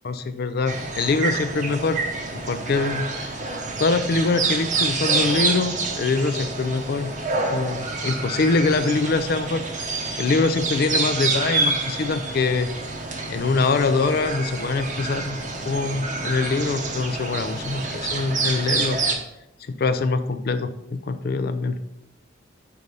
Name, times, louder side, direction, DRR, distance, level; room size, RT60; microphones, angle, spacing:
voice 1, 0.0-2.0 2.3-3.4 3.8-7.1 7.5-12.7 13.3-15.4 15.7-19.1 19.7-21.8, left 3 dB, 50° left, 10 dB, 0.4 m, -24 dB
sound 1, 0.7-19.1, right 3 dB, 40° right, 0.8 m, -27 dB
5.3 x 4.7 x 5.3 m, 0.87 s
head